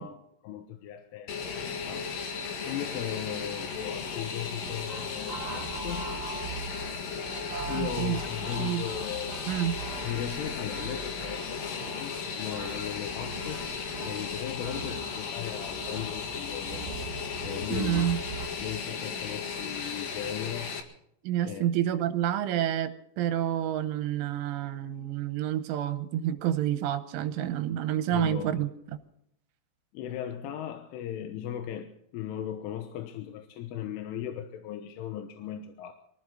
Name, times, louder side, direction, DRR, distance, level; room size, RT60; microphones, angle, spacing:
voice 1, 0.0-2.1 2.7-6.1 7.7-9.4 10.0-17.0 17.4-18.1 18.6-20.8 21.4-21.7 28.1-28.7 29.9-35.9, left 10 dB, 90° left, 6 dB, 3.6 m, -37 dB
Fixed-wing aircraft airplane, 1.3-20.8, left 6 dB, 55° left, 3.0 m, -36 dB
sound 1, 4.6-18.5, right 6 dB, 55° right, 3.1 m, -42 dB
voice 2, 7.7-8.2 8.6-8.9 9.5-9.8 17.7-18.2 21.2-28.7, right 11 dB, 80° right, 10 dB, 3.4 m, -29 dB
24.0 x 15.0 x 3.9 m, 0.75 s
omnidirectional pair, 5.6 m